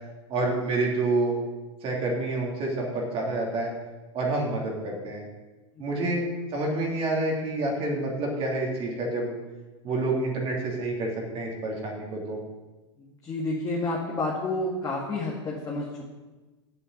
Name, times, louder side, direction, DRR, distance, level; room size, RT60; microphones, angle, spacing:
voice 1, 0.3-1.4 1.8-3.7 4.1-5.3 5.8-6.2 6.5-9.3 9.8-12.4, right 2 dB, 40° right, -1 dB, 3.0 m, -28 dB
voice 2, 5.8-6.1 13.0-16.0, left 2 dB, 25° left, -3 dB, 2.0 m, -30 dB
8.3 x 7.6 x 7.8 m, 1.2 s
hypercardioid pair, 95°, 15 cm